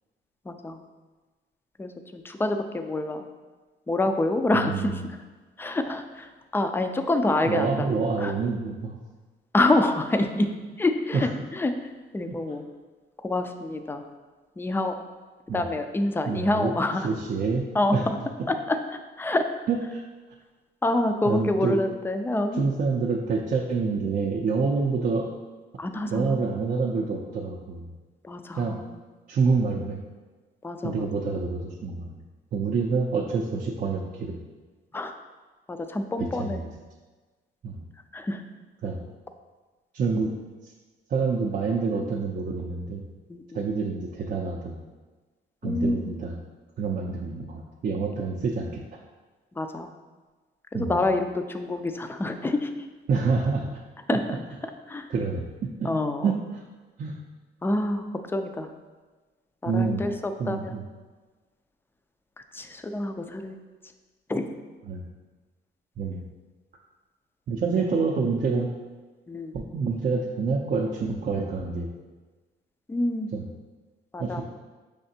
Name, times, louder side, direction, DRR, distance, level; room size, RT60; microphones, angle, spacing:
voice 1, 0.5-0.8 1.8-3.3 3.9-5.0 5.6-7.9 8.2-8.3 9.5-10.5 10.8-11.7 12.1-12.6 13.2-14.0 14.6-15.0 15.5-17.1 17.7-18.2 18.5-18.8 19.2-19.5 20.8-22.6 25.8-26.4 28.2-29.0 30.6-31.1 34.9-35.1 35.7-36.6 38.1-38.4 43.3-43.6 45.6-46.1 49.6-49.9 50.7-52.7 54.1-54.2 54.9-55.1 55.8-56.3 57.6-58.7 59.6-60.8 62.5-63.6 64.3-64.5 69.3-69.6 72.9-73.3 74.1-74.4, left 2 dB, 10° left, 7 dB, 0.3 m, -27 dB
voice 2, 4.5-5.1 7.5-9.0 11.1-11.3 12.3-12.4 15.5-15.6 16.3-16.7 17.0-17.6 17.9-18.0 19.7-20.0 21.3-21.8 22.6-25.3 26.1-27.8 28.6-28.8 29.3-30.0 30.8-32.2 32.5-34.4 36.2-36.7 37.6-37.8 38.8-39.0 39.9-40.3 40.6-40.7 41.1-43.0 43.5-44.8 45.6-46.4 46.8-48.7 50.7-51.0 53.1-53.7 55.1-55.9 56.2-56.4 57.0-57.1 59.7-60.0 60.4-60.8 64.9-65.0 66.0-66.2 67.5-68.7 69.5-71.9 73.3-73.5 74.2-74.4, right 4 dB, 45° right, -1 dB, 0.5 m, -27 dB
5.6 x 3.3 x 2.7 m, 1.3 s
cardioid pair, 90°, 20 cm